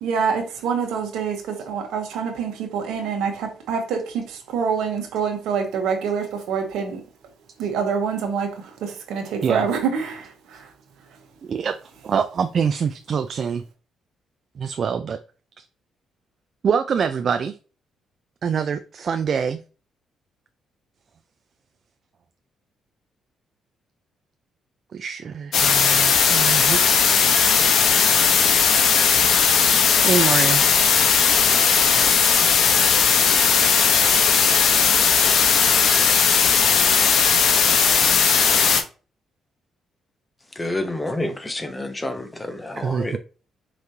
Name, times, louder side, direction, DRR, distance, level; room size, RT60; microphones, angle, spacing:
voice 1, 0.0-7.0 7.6-10.7, right 6 dB, 90° right, 1.1 m, -26 dB
voice 2, 12.0-13.6 14.6-15.2 16.6-17.5 18.4-19.6 24.9-27.0 30.0-30.6 42.8-43.2, right 6 dB, 50° right, 0.4 m, -24 dB
sound 1, 25.5-38.8, left 6 dB, 65° left, 0.8 m, -17 dB
voice 3, 40.6-43.2, left 1 dB, 15° left, 0.8 m, -28 dB
5.1 x 3.1 x 2.8 m
cardioid pair, 90°, 0 cm